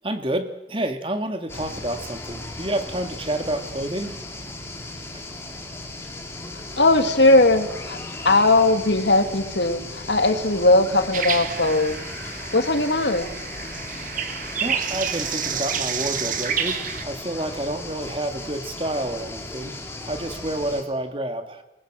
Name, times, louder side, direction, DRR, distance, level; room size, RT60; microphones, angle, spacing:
voice 1, 0.0-4.1 14.6-21.6, right 1 dB, 30° right, 7 dB, 2.1 m, -29 dB
sound 1, 1.5-20.8, left 2 dB, 15° left, 3.1 m, -36 dB
voice 2, 6.8-8.0 8.2-12.0 12.5-13.3, left 2 dB, 70° left, 8 dB, 2.3 m, -19 dB
sound 2, 11.1-17.0, right 7 dB, 45° right, 1.8 m, -29 dB
28.5 x 19.0 x 7.6 m, 0.97 s
head